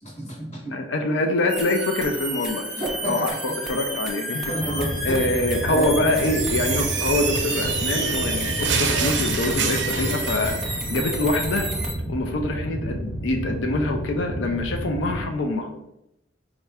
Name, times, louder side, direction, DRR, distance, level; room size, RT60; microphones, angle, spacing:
voice 1, 0.0-0.8 2.8-3.5 4.5-5.2 5.7-5.9 6.2-6.3, right 1 dB, 40° left, -2 dB, 1.2 m, -30 dB
voice 2, 0.7-2.6 3.1-4.7 5.0-11.7 12.1-15.7, left 2 dB, 85° left, 4 dB, 0.5 m, -25 dB
sound 1, 1.5-11.9, right 1 dB, ahead, 0.5 m, -31 dB
sound 2, 4.6-15.2, right 1 dB, 70° left, 1.4 m, -31 dB
sound 3, 6.2-10.6, right 6 dB, 70° right, 0.5 m, -27 dB
4.2 x 2.4 x 3.4 m, 0.85 s
head